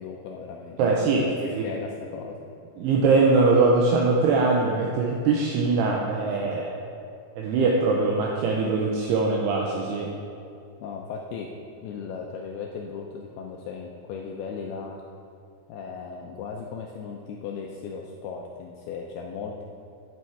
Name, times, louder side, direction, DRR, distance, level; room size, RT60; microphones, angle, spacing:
voice 1, 0.0-1.4 1.6-2.4 6.4-6.5 10.8-11.5 11.8-15.0 15.7-19.6, left 5 dB, 80° left, 1 dB, 2.3 m, -37 dB
voice 2, 0.8-1.7 2.8-6.8 7.4-10.1, right 3 dB, 80° right, -1 dB, 2.7 m, -22 dB
10.5 x 9.8 x 4.7 m, 2.5 s
omnidirectional pair, 5.1 m